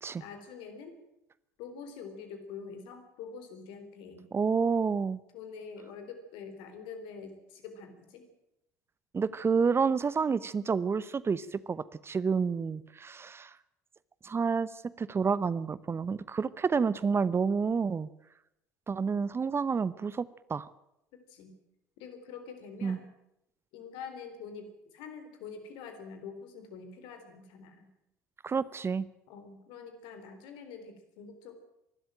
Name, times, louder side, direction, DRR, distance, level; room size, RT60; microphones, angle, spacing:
voice 1, 0.2-1.0 1.6-4.3 5.3-8.2 21.3-21.5 22.0-23.1 23.7-27.9 29.3-31.6, left 5 dB, 60° left, 8 dB, 3.9 m, -45 dB
voice 2, 4.3-5.2 9.1-13.6 14.2-14.7 15.0-18.1 18.9-20.7 22.8-23.0 28.4-29.1, right 5 dB, 25° right, 18 dB, 0.8 m, -29 dB
24.0 x 12.5 x 9.0 m, 0.85 s
figure-of-eight pair, 65°, 9 cm